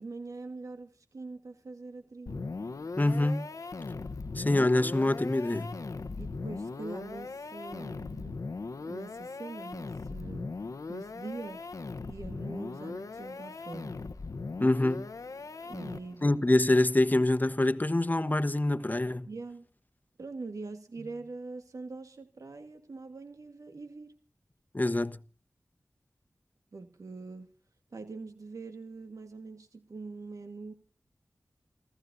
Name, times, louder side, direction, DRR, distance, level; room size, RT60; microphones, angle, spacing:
voice 1, 0.0-2.5 6.2-8.4 8.8-11.7 12.1-14.0 15.6-16.3 19.3-19.6 20.2-24.2 26.7-27.5 27.9-30.7, right 3 dB, 80° right, 1.6 m, -43 dB
sound 1, 2.3-16.3, left 3 dB, 80° left, 0.9 m, -39 dB
voice 2, 3.0-3.5 4.3-5.8 14.6-15.1 16.2-19.3 24.7-25.2, left 2 dB, 30° left, 1.2 m, -25 dB
29.0 x 14.5 x 2.7 m
cardioid pair, 45°, 6 cm